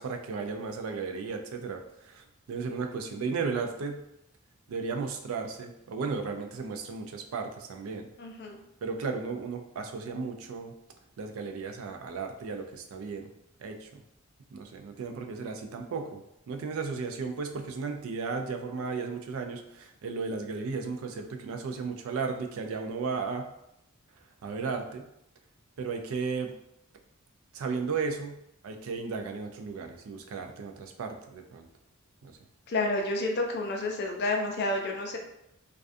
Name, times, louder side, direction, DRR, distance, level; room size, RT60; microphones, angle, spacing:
voice 1, 0.0-4.0 4.7-8.1 8.8-10.7 11.2-13.3 13.6-14.0 14.5-16.2 16.5-23.5 24.4-25.0 25.8-26.5 27.5-28.4 28.6-31.7 32.2-32.4, right 4 dB, 65° right, 4 dB, 0.3 m, -35 dB
voice 2, 8.2-8.6 32.7-35.2, left 2 dB, 50° left, 2 dB, 0.4 m, -30 dB
2.3 x 2.2 x 2.5 m, 0.81 s
head